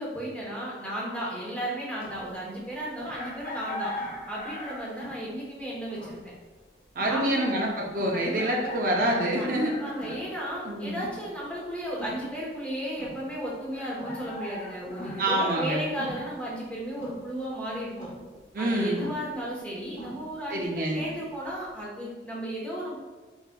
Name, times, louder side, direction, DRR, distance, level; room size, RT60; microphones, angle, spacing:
voice 1, 0.0-3.9 4.3-6.2 7.1-7.5 8.1-8.6 9.4-18.1 18.6-22.9, right 1 dB, 5° left, -6 dB, 0.9 m, -34 dB
sound 1, 2.0-21.8, equal, 30° left, 1.3 m, -45 dB
Chicken rooster, 3.1-5.1 6.7-6.8 8.3-10.2 13.7-15.6, left 1 dB, 50° left, 0.6 m, -39 dB
voice 2, 7.0-9.7 10.7-11.0 15.2-15.8 18.5-19.0 20.5-21.0, right 1 dB, 50° right, -1 dB, 0.5 m, -26 dB
4.9 x 3.5 x 2.2 m, 1.3 s
head